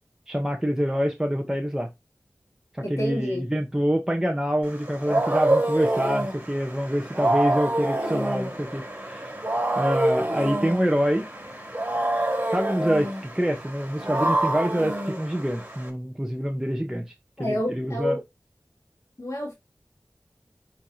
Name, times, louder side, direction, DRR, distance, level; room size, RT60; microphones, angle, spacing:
voice 1, 0.3-1.9 2.7-9.3 9.8-11.3 12.5-17.0 17.4-18.1, equal, 10° right, 1.1 m, -26 dB
voice 2, 2.8-3.5 17.4-18.2 19.2-19.5, equal, 55° left, 2.6 m, -29 dB
Wild animals, 4.7-15.9, right 1 dB, 25° right, 3.9 m, -27 dB
9.9 x 4.6 x 2.8 m
wide cardioid pair, 60°, 6 cm